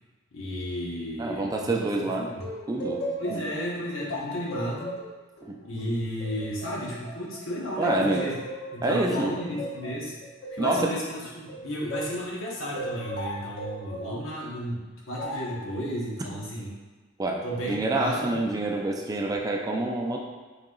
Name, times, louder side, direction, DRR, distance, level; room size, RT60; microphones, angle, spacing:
voice 1, 0.3-2.4 3.2-4.9 5.6-8.3 8.7-10.1 10.5-16.7 17.4-18.4, equal, 80° left, -4 dB, 1.1 m, -33 dB
voice 2, 1.2-2.3 2.7-3.0 3.3-3.4 5.4-5.6 7.8-8.3 8.8-9.3 10.6-11.0 17.2-20.2, right 2 dB, 20° right, 0 dB, 0.3 m, -27 dB
sound 1, 2.4-7.4 7.9-12.2 12.7-14.2 15.2-15.6, equal, 55° left, 0.6 m, -36 dB
3.9 x 2.8 x 3.7 m, 1.3 s
head